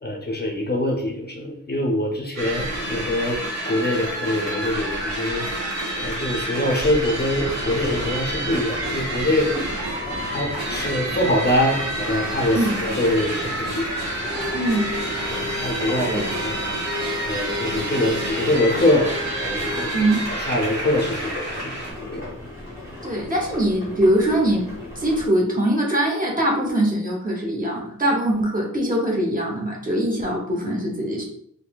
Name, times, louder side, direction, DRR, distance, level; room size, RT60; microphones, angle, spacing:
voice 1, 0.0-3.4 3.7-5.4 6.0-9.5 10.3-13.9 15.3-16.6 17.2-19.1 19.4-21.7 22.0-22.3, left 1 dB, 30° left, 0 dB, 0.5 m, -24 dB
sound 1, 2.4-21.9, right 1 dB, 50° right, 1.2 m, -29 dB
sound 2, 7.0-25.3, left 1 dB, 10° right, 1.1 m, -37 dB
sound 3, 14.2-21.1, left 2 dB, 85° right, 1.2 m, -34 dB
voice 2, 14.5-14.9 16.1-16.3 19.9-20.2 23.0-24.7 25.0-31.2, right 1 dB, 25° right, -1 dB, 0.7 m, -22 dB
3.8 x 2.6 x 2.2 m, 0.68 s
wide cardioid pair, 170°, 33 cm